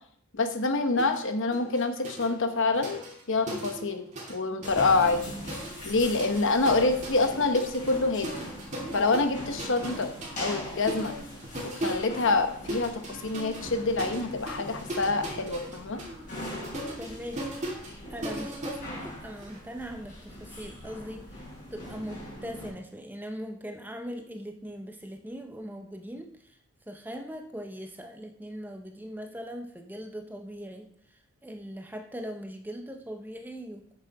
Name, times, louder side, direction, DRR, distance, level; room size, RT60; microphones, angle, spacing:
voice 1, 0.3-3.0 3.3-4.0 4.3-5.2 5.8-8.3 8.9-10.1 10.4-11.1 11.6-16.0, left 3 dB, 55° left, 7 dB, 1.0 m, -26 dB
sound 1, 1.0-1.2 1.5-4.4 4.6-19.6, right 1 dB, 30° right, 2.5 m, -39 dB
sound 2, 4.6-22.7, left 1 dB, 35° left, 4.5 m, -41 dB
voice 2, 17.0-17.6 18.1-26.6 26.9-33.9, equal, 10° right, 5 dB, 0.6 m, -40 dB
9.2 x 6.7 x 4.7 m, 0.65 s
head